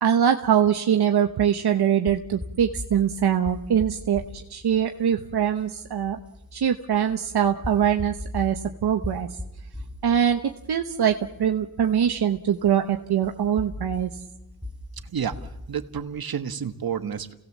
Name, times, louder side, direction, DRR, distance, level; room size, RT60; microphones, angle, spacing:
voice 1, 0.0-6.2 6.5-9.3 10.0-14.1, right 9 dB, 85° right, 5 dB, 1.1 m, -23 dB
sound 1, 2.1-16.0, left 1 dB, 5° right, 4.2 m, -40 dB
voice 2, 15.0-17.3, right 7 dB, 70° right, 8 dB, 1.6 m, -30 dB
29.0 x 17.5 x 7.4 m, 0.97 s
cardioid pair, 65°, 38 cm